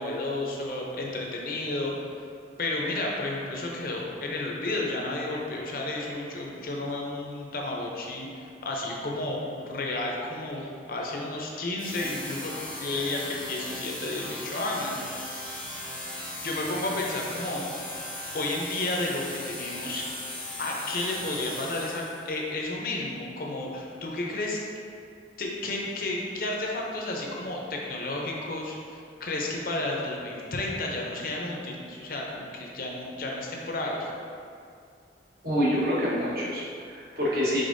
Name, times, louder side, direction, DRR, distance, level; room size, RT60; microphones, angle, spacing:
voice 1, 0.0-1.9 2.6-15.4 16.4-17.6 18.3-20.0 20.6-24.6 25.4-34.1, left 2 dB, 50° left, -2 dB, 0.6 m, -32 dB
sound 1, 11.8-22.3, left 1 dB, 5° left, 0.7 m, -38 dB
voice 2, 35.4-37.6, equal, 55° right, -8 dB, 1.2 m, -27 dB
5.0 x 3.9 x 2.6 m, 2.4 s
head